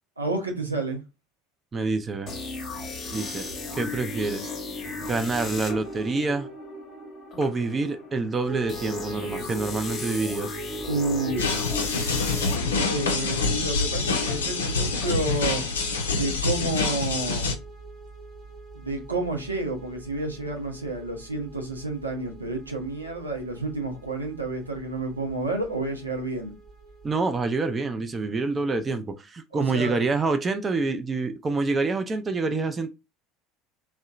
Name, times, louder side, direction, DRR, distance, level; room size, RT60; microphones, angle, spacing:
voice 1, 0.2-1.0 10.9-11.5 12.9-15.6 16.1-17.5 18.7-26.5 29.5-29.9, right 2 dB, 90° right, 0.5 m, -30 dB
voice 2, 1.7-2.3 3.1-4.5 5.0-6.5 7.4-10.6 27.0-32.9, right 3 dB, 25° right, 0.4 m, -27 dB
sound 1, 2.3-16.0, left 3 dB, 35° left, 0.8 m, -36 dB
sound 2, 8.4-27.2, right 2 dB, 45° right, 0.8 m, -41 dB
sound 3, 11.4-17.5, left 4 dB, 80° left, 0.4 m, -26 dB
2.7 x 2.1 x 2.3 m
figure-of-eight pair, 65°, 0 cm